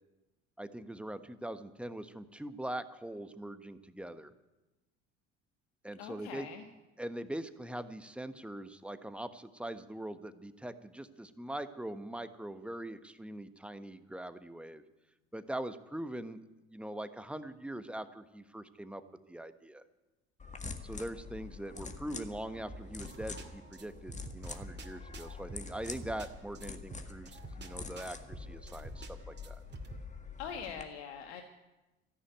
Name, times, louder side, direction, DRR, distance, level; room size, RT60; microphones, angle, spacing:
voice 1, 0.6-4.3 5.8-6.5 7.0-14.8 15.3-16.4 16.7-19.0 19.3-19.8 20.8-29.6, right 1 dB, 5° right, 10 dB, 1.2 m, -42 dB
voice 2, 6.0-6.6 30.4-31.4, left 7 dB, 70° left, 5 dB, 1.4 m, -43 dB
sound 1, 20.4-30.8, left 4 dB, 20° left, 1.7 m, -46 dB
sound 2, 22.7-30.1, right 1 dB, 30° right, 2.3 m, -48 dB
14.0 x 11.0 x 9.2 m, 1.1 s
hypercardioid pair, 60°, 33 cm